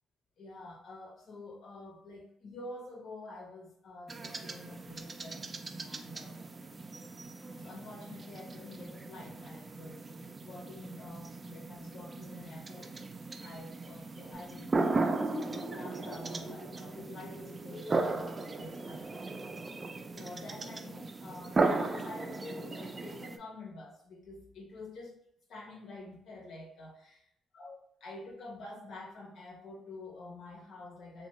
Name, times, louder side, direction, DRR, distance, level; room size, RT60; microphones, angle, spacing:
voice 1, 0.4-5.4 5.8-6.4 7.6-12.9 13.4-19.4 20.1-25.2 25.5-27.1 27.5-31.3, left 2 dB, 65° left, 0 dB, 0.8 m, -48 dB
sound 1, 4.1-23.4, right 3 dB, 30° right, 0.3 m, -37 dB
sound 2, 14.3-19.7, equal, 15° left, 0.7 m, -46 dB
2.8 x 2.2 x 3.0 m, 0.71 s
cardioid pair, 90°, 0 cm